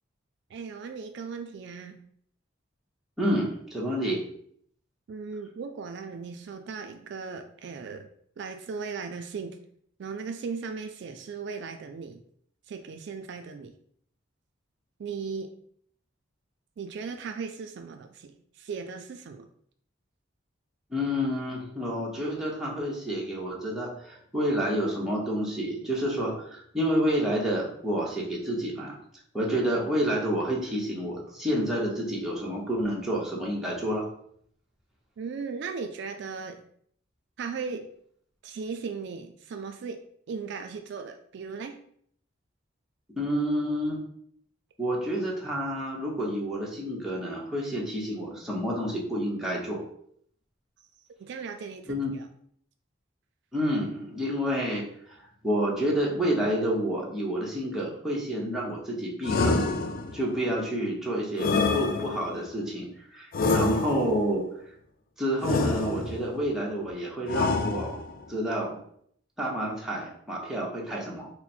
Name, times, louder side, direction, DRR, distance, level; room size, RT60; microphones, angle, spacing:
voice 1, 0.5-2.0 5.1-8.1 8.4-9.6 10.0-12.2 12.7-13.7 15.0-15.5 16.8-19.5 35.2-36.6 37.4-37.9 38.4-40.0 40.3-41.8 51.2-52.3, right 5 dB, 60° right, 6 dB, 0.3 m, -37 dB
voice 2, 3.2-4.2 20.9-29.0 29.3-34.0 43.2-44.0 44.8-49.8 51.9-52.1 53.5-54.8 55.4-59.7 60.1-64.4 65.2-68.0 68.3-68.8 69.4-71.3, equal, ahead, -5 dB, 0.9 m, -29 dB
sound 1, 59.2-60.3 61.4-62.4 63.3-64.3 65.4-66.3 67.3-68.2, left 3 dB, 50° left, 0.4 m, -27 dB
4.0 x 2.1 x 4.2 m, 0.66 s
head